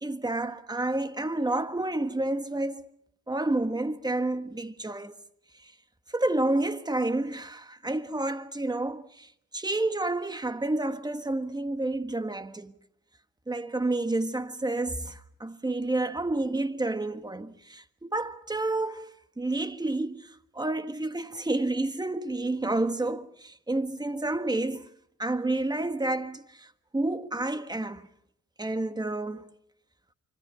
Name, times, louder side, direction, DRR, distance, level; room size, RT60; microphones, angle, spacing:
voice 1, 0.0-2.9 3.3-5.1 6.1-9.3 9.5-12.7 13.5-24.9 25.2-26.7 26.9-28.0 28.6-29.5, right 2 dB, 15° right, 1.5 m, -30 dB
26.5 x 25.5 x 5.7 m
cardioid pair, 90°, 30 cm